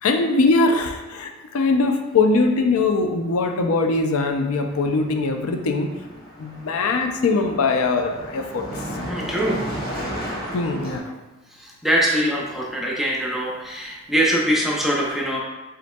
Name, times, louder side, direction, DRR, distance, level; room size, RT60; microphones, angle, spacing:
voice 1, 0.0-5.9 6.4-8.6 10.5-11.1, left 3 dB, 75° left, 4 dB, 0.4 m, -21 dB
Car passing by, 3.5-3.7 4.0-11.0, equal, 45° left, 1.2 m, -34 dB
voice 2, 9.1-9.6 11.6-15.4, equal, ahead, -3 dB, 0.6 m, -23 dB
5.1 x 3.7 x 2.2 m, 1.1 s
head